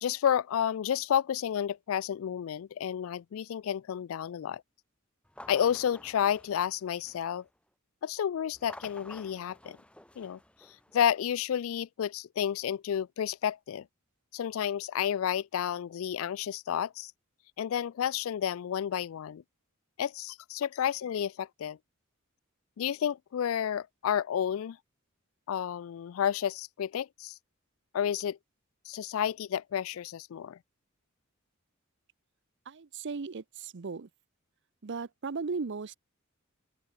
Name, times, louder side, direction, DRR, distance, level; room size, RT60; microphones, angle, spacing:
voice 1, 0.0-4.6 5.5-7.5 8.0-9.8 10.2-10.4 10.9-13.9 14.3-17.1 17.6-19.4 20.0-21.8 22.8-24.8 25.5-27.4 27.9-28.4 28.9-30.6, left 9 dB, 70° left, 0.3 m, -31 dB
sound 1, 5.3-7.5 8.5-11.0, left 1 dB, 5° left, 3.5 m, -51 dB
voice 2, 32.7-34.1 34.8-36.0, right 4 dB, 60° right, 0.6 m, -36 dB
open air
head